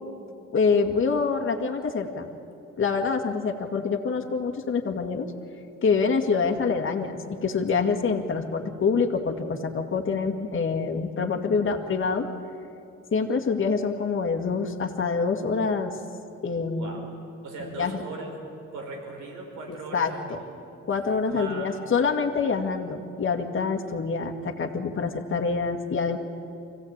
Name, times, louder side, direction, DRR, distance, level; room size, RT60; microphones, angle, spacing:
voice 1, 0.5-2.3 2.8-5.3 5.8-12.3 13.1-16.0 16.4-17.0 17.6-18.0 19.9-20.1 20.9-26.2, left 5 dB, 40° left, 3 dB, 2.0 m, -26 dB
voice 2, 16.7-17.0 17.4-18.3 18.7-20.5 21.3-21.7, right 3 dB, 85° right, 1 dB, 4.8 m, -38 dB
24.5 x 16.0 x 8.8 m, 2.6 s
cardioid pair, 90°, 30 cm